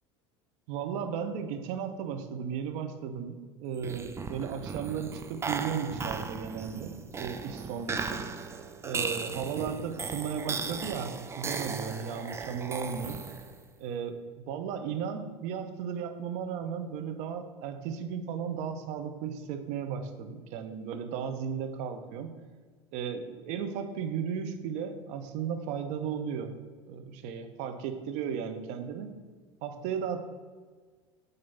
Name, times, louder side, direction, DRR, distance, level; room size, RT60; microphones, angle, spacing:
voice 1, 0.7-8.2 8.8-13.2 13.8-14.2 14.5-22.4 22.9-26.5 26.9-29.2 29.6-30.3, right 7 dB, 55° right, 7 dB, 0.7 m, -35 dB
sound 1, 3.7-13.6, right 4 dB, 20° right, 0.5 m, -37 dB
7.4 x 2.7 x 5.5 m, 1.5 s
figure-of-eight pair, 75°, 15 cm